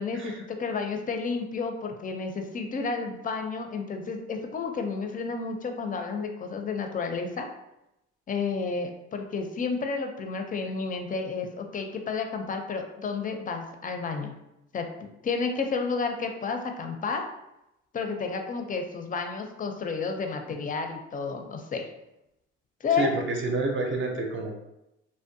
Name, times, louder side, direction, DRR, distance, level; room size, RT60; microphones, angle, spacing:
voice 1, 0.0-7.5 8.3-14.3 14.7-14.9 15.2-17.2 17.9-21.9 22.8-23.1, left 4 dB, 30° left, 4 dB, 0.4 m, -31 dB
voice 2, 23.0-24.5, right 3 dB, 45° right, 2 dB, 0.6 m, -29 dB
2.5 x 2.1 x 2.6 m, 0.89 s
supercardioid pair, 65°, 29 cm